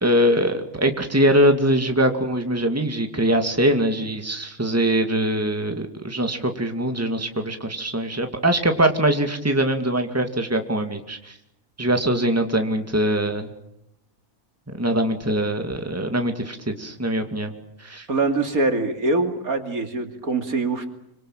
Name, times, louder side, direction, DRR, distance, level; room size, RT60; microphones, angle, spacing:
voice 1, 0.0-11.4 11.8-13.5 14.7-17.5 17.8-18.1, right 1 dB, 10° right, 5 dB, 2.3 m, -22 dB
voice 2, 18.1-20.9, right 3 dB, 70° right, 6 dB, 3.0 m, -23 dB
26.0 x 25.5 x 7.5 m, 0.83 s
omnidirectional pair, 1.6 m